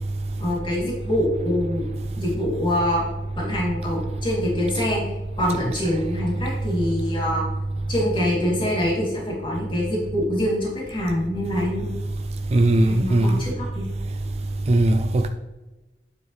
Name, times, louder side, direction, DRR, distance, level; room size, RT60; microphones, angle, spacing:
voice 1, 0.4-1.8 2.2-3.0 3.3-5.0 5.4-7.4 7.9-11.9 12.7-13.9, left 1 dB, 30° left, 3.0 m, -25 dB
voice 2, 12.5-13.4 14.7-15.3, right 1 dB, 35° right, 0.4 m, -18 dB
9.1 x 7.2 x 3.3 m
head